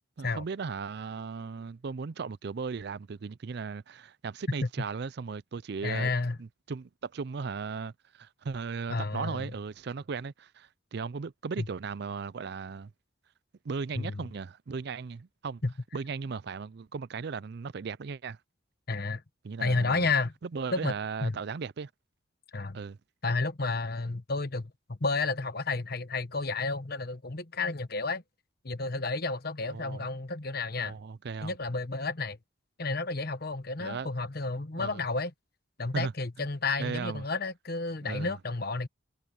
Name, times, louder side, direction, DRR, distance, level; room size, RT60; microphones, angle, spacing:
voice 1, 0.2-6.1 6.4-12.9 13.6-15.6 15.9-18.4 19.4-20.1 20.4-21.9 22.7-23.0 29.6-30.1 30.8-31.6 33.8-34.1 34.8-35.1 35.9-36.1 36.4-36.5 36.8-37.2 38.0-38.3, right 5 dB, 55° right, 0.4 m, -37 dB
voice 2, 5.8-6.4 8.9-9.5 11.6-11.7 14.0-14.2 15.6-15.7 18.9-19.2 19.6-20.3 20.7-20.9 21.2-21.4 22.5-22.8 23.2-28.2 28.6-30.9 31.4-32.4 32.8-35.3 35.8-38.9, left 3 dB, 50° left, 1.3 m, -31 dB
head